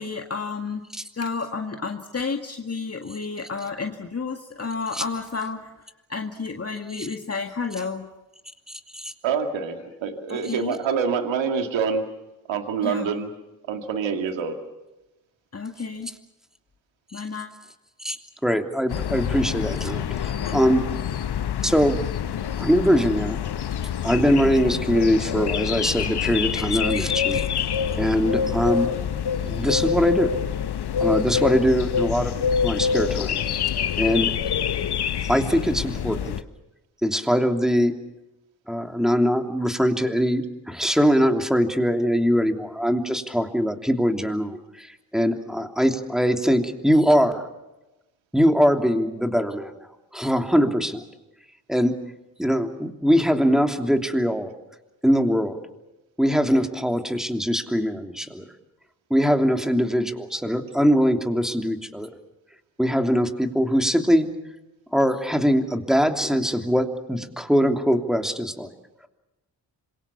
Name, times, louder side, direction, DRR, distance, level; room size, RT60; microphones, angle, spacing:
voice 1, 0.0-5.7 6.1-8.0 10.5-10.8 12.8-13.1 15.5-16.1 17.1-17.5, left 4 dB, 30° left, 4 dB, 1.9 m, -31 dB
voice 2, 9.2-12.0 12.5-13.3 13.7-14.6, right 6 dB, 70° right, 6 dB, 2.3 m, -26 dB
voice 3, 18.4-20.8 21.6-22.0 22.6-23.4 24.0-27.4 28.0-28.9 29.4-30.3 31.0-32.3 32.6-33.4 34.0-34.3 35.3-36.4 37.0-37.9 38.7-44.9 45.1-47.5 48.3-49.7 50.1-51.0 51.7-52.0 52.4-54.5 55.0-55.6 56.2-58.5 59.1-62.1 62.8-64.3 64.9-68.7, equal, ahead, 5 dB, 3.0 m, -22 dB
sound 1, 18.9-36.4, left 8 dB, 55° left, 1.3 m, -26 dB
26.5 x 23.0 x 7.1 m, 1.0 s
hypercardioid pair, 45°, 47 cm